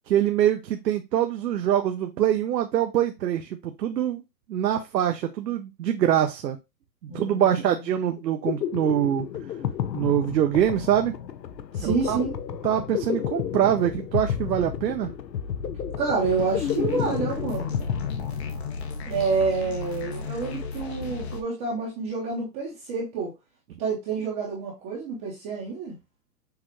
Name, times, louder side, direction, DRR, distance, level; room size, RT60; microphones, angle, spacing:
voice 1, 0.1-4.2 4.5-6.6 7.0-9.3 9.9-11.1 11.8-12.2 12.6-15.1, right 10 dB, 75° right, 6 dB, 0.8 m, -24 dB
voice 2, 7.1-7.5 11.7-12.3 16.0-17.8 19.1-23.3 23.8-26.0, right 4 dB, 15° right, -5 dB, 0.7 m, -28 dB
sound 1, 8.2-19.0, left 9 dB, 80° left, 0.8 m, -31 dB
sound 2, 16.2-21.4, left 4 dB, 40° left, 0.8 m, -34 dB
6.6 x 2.4 x 3.0 m, 0.24 s
hypercardioid pair, 150°, 50 cm